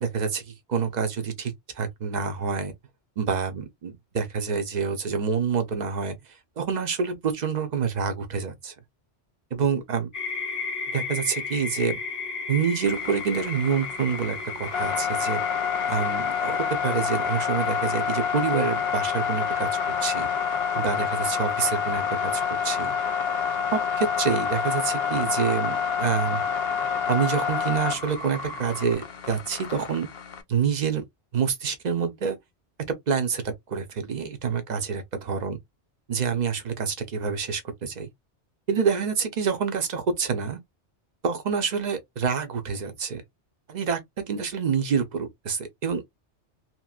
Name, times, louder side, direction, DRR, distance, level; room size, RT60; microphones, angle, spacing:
voice 1, 0.0-2.7 3.2-6.2 6.6-8.7 9.5-10.1 10.9-12.0 12.5-15.4 15.9-19.7 20.0-20.3 20.7-22.9 23.7-26.4 27.1-29.0 29.3-30.1 30.5-31.0 31.3-32.4 33.1-35.6 36.1-38.1 38.7-40.6 41.2-43.2 43.7-46.1, right 6 dB, 45° right, 0.7 m, -27 dB
sound 1, 10.1-28.9, left 3 dB, 15° left, 1.0 m, -37 dB
sound 2, 12.9-30.4, left 7 dB, 65° left, 0.8 m, -28 dB
2.9 x 2.5 x 2.4 m
omnidirectional pair, 1.2 m